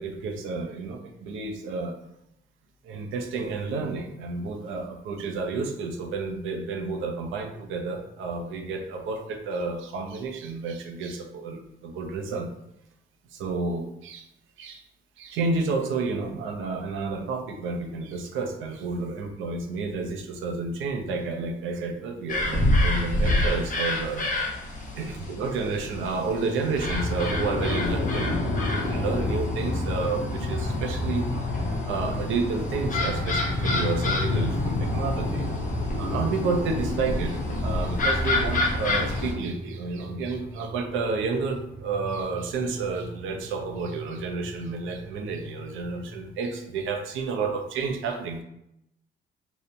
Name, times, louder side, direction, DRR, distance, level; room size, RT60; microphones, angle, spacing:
voice 1, 0.0-1.9 2.8-12.5 13.3-14.3 14.6-14.8 15.2-24.2 24.9-31.2 31.9-35.5 35.9-48.4, right 4 dB, 80° right, 3 dB, 0.5 m, -30 dB
sound 1, 22.3-39.3, left 2 dB, 40° left, 0.7 m, -27 dB
sound 2, 39.0-46.8, right 2 dB, 10° right, 0.9 m, -42 dB
2.8 x 2.0 x 2.5 m, 0.81 s
cardioid pair, 90°, 20 cm